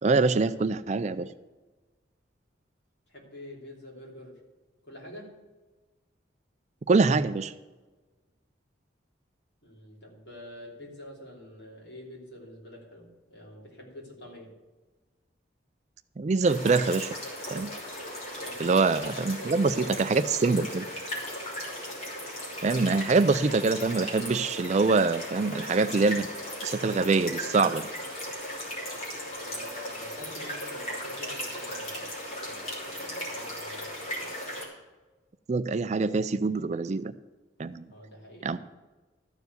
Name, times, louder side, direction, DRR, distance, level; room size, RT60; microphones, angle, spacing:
voice 1, 0.0-1.3 6.9-7.5 16.2-17.2 17.5-17.7 18.6-20.9 22.6-26.3 26.6-27.9 35.5-37.1 37.6-37.8 38.4-38.6, right 4 dB, 35° right, 12 dB, 0.4 m, -24 dB
voice 2, 3.1-4.4 4.8-5.4 9.6-14.5 18.4-18.7 19.4-20.0 29.3-32.1 32.4-34.3 37.9-38.5, left 1 dB, 65° left, -3 dB, 3.2 m, -47 dB
sound 1, 16.5-34.7, equal, 35° left, 3.0 m, -37 dB
13.0 x 4.8 x 8.0 m, 1.2 s
head